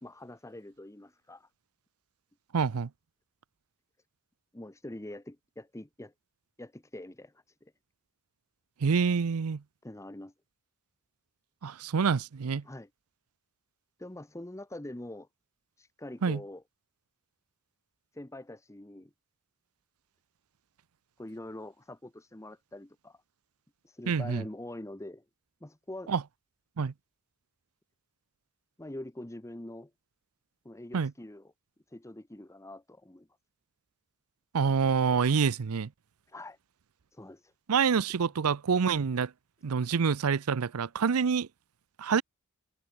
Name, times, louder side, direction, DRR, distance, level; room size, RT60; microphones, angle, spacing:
voice 1, 0.0-1.5 4.5-6.1 6.6-7.7 9.8-10.3 12.6-12.9 14.0-15.3 15.8-16.6 18.1-19.1 21.2-23.2 23.8-25.2 25.6-26.1 28.8-29.9 30.6-31.5 31.9-33.3 36.3-36.6 37.1-37.5, left 1 dB, 15° left, 0.9 m, -44 dB
voice 2, 2.5-2.9 8.8-9.6 11.6-12.6 16.2-16.4 24.1-24.4 26.1-26.2 26.8-26.9 30.9-31.1 34.5-35.9 37.7-39.3 39.6-41.5 42.0-42.2, right 6 dB, 85° right, 0.6 m, -27 dB
head